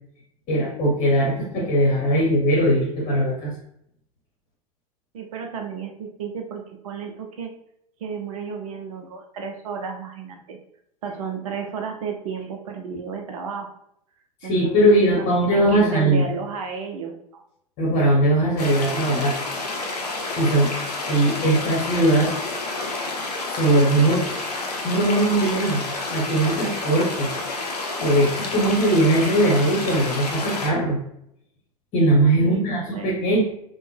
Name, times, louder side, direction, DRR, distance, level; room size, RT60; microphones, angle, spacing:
voice 1, 0.5-3.5 14.4-16.2 17.8-19.4 20.4-20.7 21.0-22.4 23.5-24.3 24.8-27.3 28.0-31.0 31.9-33.4, right 1 dB, 35° left, -2 dB, 1.0 m, -20 dB
voice 2, 5.1-7.5 8.0-10.6 11.0-13.7 14.4-17.4 32.4-33.1, right 6 dB, 60° right, 3 dB, 0.5 m, -33 dB
sound 1, 18.6-30.7, left 2 dB, 75° left, 0.6 m, -29 dB
3.3 x 2.2 x 3.2 m, 0.74 s
figure-of-eight pair, 80°, 21 cm